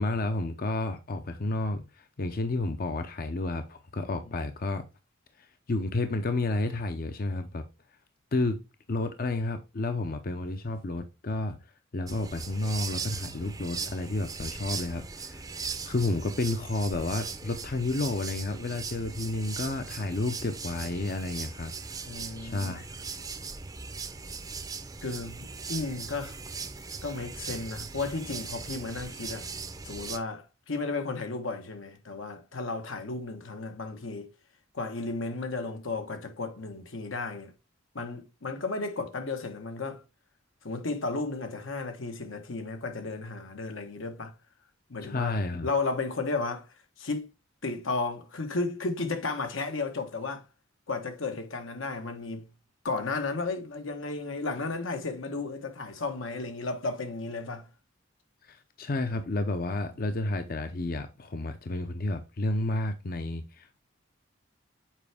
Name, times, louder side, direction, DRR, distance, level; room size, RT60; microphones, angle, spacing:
voice 1, 0.0-4.8 5.4-7.6 8.3-8.6 8.9-11.6 11.9-21.7 22.4-22.9 45.0-45.7 58.4-63.8, left 2 dB, 50° left, 0.6 m, -31 dB
sound 1, 12.1-30.2, right 5 dB, 20° right, 0.6 m, -39 dB
voice 2, 22.0-22.8 25.0-26.4 27.0-29.5 29.8-34.3 34.7-37.5 37.9-40.0 40.6-44.3 44.9-46.7 47.0-47.3 47.6-50.5 50.9-52.4 52.8-57.7, left 3 dB, 80° left, 1.2 m, -34 dB
7.3 x 4.5 x 3.4 m
head